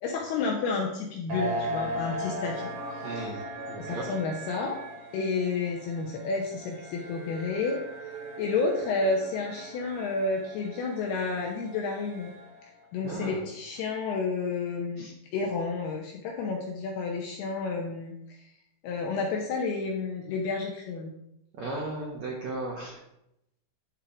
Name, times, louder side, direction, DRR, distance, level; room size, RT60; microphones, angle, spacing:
voice 1, 0.0-2.7 3.0-3.5 3.8-4.8 5.1-7.8 8.4-12.3 12.9-18.5 18.8-21.1, left 4 dB, 80° left, 0 dB, 2.3 m, -31 dB
sound 1, 1.3-12.7, right 1 dB, 60° right, 2.4 m, -38 dB
voice 2, 3.0-3.4 3.7-4.0 13.0-13.4 15.0-15.1 21.6-23.0, right 2 dB, 85° right, -2 dB, 1.5 m, -35 dB
11.0 x 4.5 x 5.0 m, 0.82 s
omnidirectional pair, 5.6 m